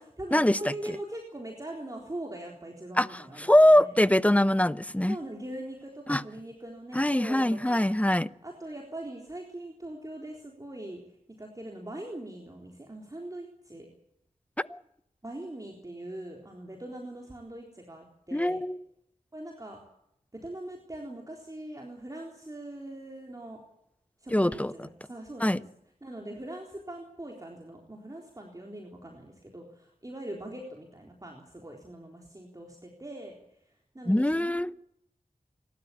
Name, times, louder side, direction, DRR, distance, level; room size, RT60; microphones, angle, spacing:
voice 1, 0.2-3.9 5.1-7.9 8.4-13.9 15.2-18.6 19.3-19.8 20.3-23.6 24.2-25.6 26.0-34.6, right 1 dB, 25° right, 3.8 m, -42 dB
voice 2, 3.4-5.2 6.1-6.2 6.9-8.3 14.7-14.8 18.3-18.8 24.3-24.7 25.4-25.6 34.1-34.7, left 1 dB, 10° left, 0.7 m, -22 dB
27.5 x 13.0 x 8.6 m
wide cardioid pair, 70°, 14 cm